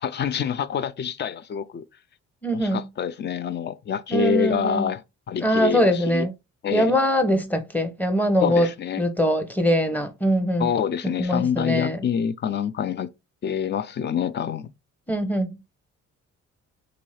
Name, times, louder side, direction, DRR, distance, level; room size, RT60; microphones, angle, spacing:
voice 1, 0.0-1.9 2.5-6.3 6.6-7.0 8.4-9.0 10.6-13.1 13.4-14.7, left 7 dB, 35° left, 0.4 m, -26 dB
voice 2, 2.4-2.8 4.1-4.9 5.4-6.3 6.7-8.7 9.0-10.7 11.2-12.0 15.1-15.6, equal, 5° left, 0.8 m, -22 dB
3.8 x 2.6 x 3.1 m
cardioid pair, 90°, 30 cm